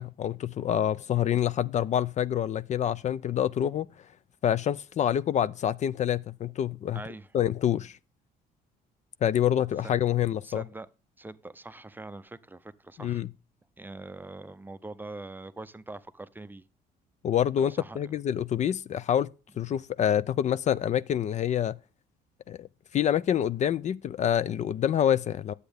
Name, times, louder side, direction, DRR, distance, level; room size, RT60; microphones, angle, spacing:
voice 1, 0.0-3.9 4.4-7.0 7.3-8.0 9.2-10.6 13.0-13.3 17.2-19.3 19.6-21.8 22.5-22.7 22.9-25.5, left 10 dB, 45° left, 0.4 m, -27 dB
voice 2, 6.9-7.3 9.8-9.9 10.4-10.9 11.2-13.2 13.8-16.6 17.6-18.2, right 2 dB, 10° right, 0.5 m, -43 dB
9.9 x 8.1 x 3.4 m
cardioid pair, 110°, 17 cm